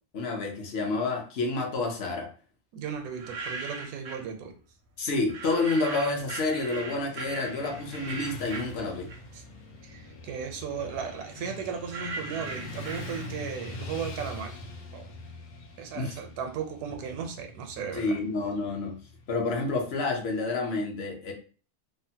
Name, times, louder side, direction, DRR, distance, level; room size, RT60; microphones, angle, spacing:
voice 1, 0.1-2.3 5.0-9.1 16.0-16.2 17.9-19.0 19.3-21.3, left 3 dB, 55° left, 2 dB, 0.7 m, -29 dB
voice 2, 2.7-4.5 9.3-9.4 9.8-14.5 14.9-15.1 15.8-18.2, right 7 dB, 80° right, 5 dB, 1.1 m, -36 dB
sound 1, 3.0-4.3 5.3-9.5 9.9-13.6, right 3 dB, 60° right, 0.7 m, -39 dB
Motorcycle / Traffic noise roadway noise, 6.1-20.2, left 2 dB, 75° left, 1.1 m, -44 dB
3.1 x 2.1 x 2.7 m, 0.39 s
omnidirectional pair, 1.6 m